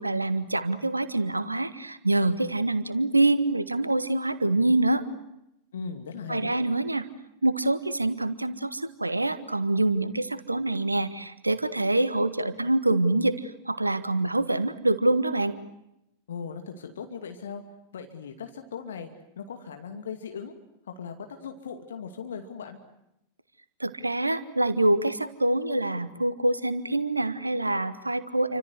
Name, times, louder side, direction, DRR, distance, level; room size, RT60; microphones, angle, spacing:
voice 1, 0.0-5.0 6.3-7.1 7.4-15.6 23.8-28.6, right 2 dB, 85° right, 14 dB, 1.5 m, -25 dB
voice 2, 5.7-6.5 16.3-17.6 17.9-19.1 19.4-20.5 20.9-22.8, left 6 dB, 65° left, 6 dB, 2.5 m, -38 dB
29.0 x 25.5 x 8.1 m, 0.83 s
figure-of-eight pair, 90°, 0 cm